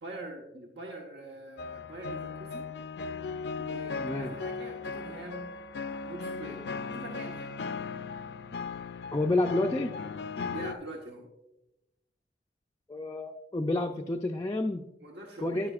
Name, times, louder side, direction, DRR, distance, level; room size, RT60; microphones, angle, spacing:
voice 1, 0.0-2.7 3.6-5.5 5.9-7.5 10.5-11.3 15.0-15.7, right 2 dB, 70° right, -1 dB, 1.2 m, -43 dB
sound 1, 1.6-10.7, left 4 dB, 75° left, 0.5 m, -37 dB
voice 2, 4.0-4.3 9.1-9.9 12.9-14.8 15.4-15.7, left 2 dB, 20° left, 1 dB, 0.4 m, -29 dB
10.5 x 10.0 x 2.4 m, 0.92 s
head